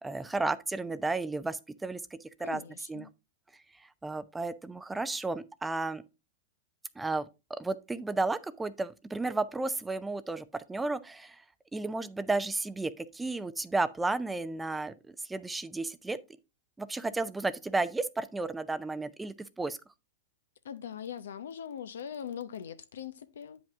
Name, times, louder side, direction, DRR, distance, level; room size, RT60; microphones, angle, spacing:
voice 1, 0.0-2.6 2.9-3.1 3.8-6.0 7.0-11.4 11.7-16.2 16.8-19.8, right 3 dB, 10° right, 0.5 m, -33 dB
voice 2, 2.4-3.1 20.6-23.6, left 8 dB, 85° left, 0.8 m, -41 dB
8.9 x 5.3 x 3.5 m
hypercardioid pair, 130°, 0 cm